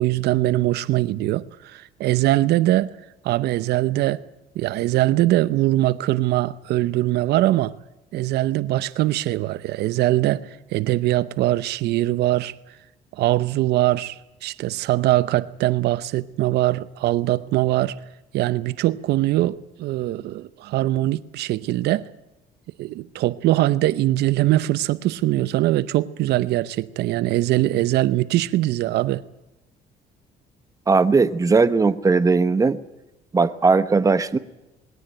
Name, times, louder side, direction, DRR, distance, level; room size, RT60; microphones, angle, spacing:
voice 1, 0.0-3.0 3.2-4.2 4.5-7.7 8.1-12.5 13.1-18.0 18.3-22.0 22.8-29.2, right 15 dB, 75° right, 0.8 m, -22 dB
voice 2, 30.9-32.8 33.3-34.4, right 4 dB, 20° right, 1.0 m, -18 dB
21.0 x 17.5 x 9.1 m
cardioid pair, 110°, 17 cm